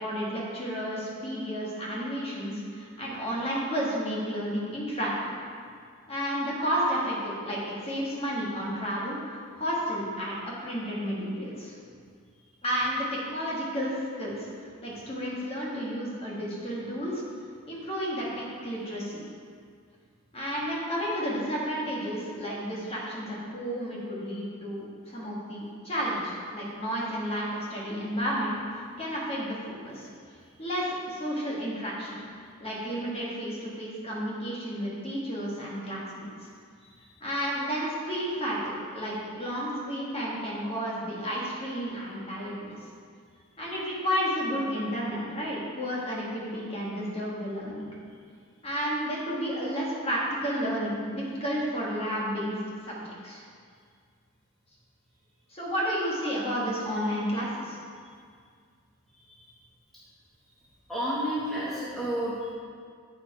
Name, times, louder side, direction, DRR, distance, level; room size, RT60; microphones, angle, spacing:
voice 1, 0.0-5.4 6.1-10.3 10.6-11.7 12.6-17.2 17.7-19.2 20.3-28.5 29.0-30.1 30.6-32.2 32.6-36.3 37.2-42.8 43.6-47.9 48.6-53.4 55.5-57.8, equal, 25° left, -5 dB, 1.5 m, -31 dB
voice 2, 60.9-62.5, equal, ahead, -9 dB, 1.0 m, -31 dB
8.1 x 4.7 x 4.5 m, 2.1 s
head